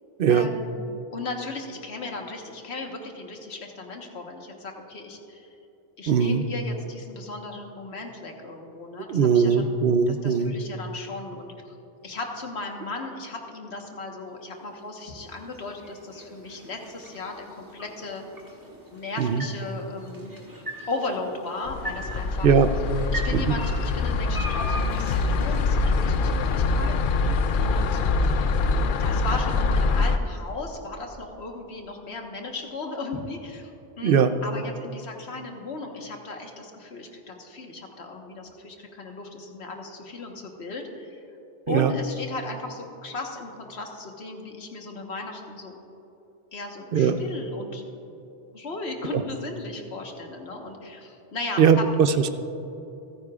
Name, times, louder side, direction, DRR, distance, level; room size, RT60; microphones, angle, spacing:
voice 1, 0.3-0.8 1.1-5.5 6.0-9.7 10.1-11.7 12.0-18.2 18.9-20.4 20.9-22.5 23.1-28.0 29.0-33.7 34.0-41.2 41.7-45.7 46.5-48.0 48.5-51.8, left 3 dB, 80° left, 2 dB, 1.6 m, -36 dB
voice 2, 6.1-6.4 9.1-10.5 19.2-19.4 22.4-22.7 23.3-23.4 34.0-34.3 41.7-41.9 46.9-47.2 49.1-49.2 51.6-52.3, right 7 dB, 65° right, 10 dB, 0.8 m, -20 dB
sound 1, 14.3-30.5, right 1 dB, 20° right, 1.7 m, -42 dB
sound 2, 21.7-30.2, left 3 dB, 60° left, 0.6 m, -24 dB
27.0 x 9.7 x 2.4 m, 3.0 s
omnidirectional pair, 1.1 m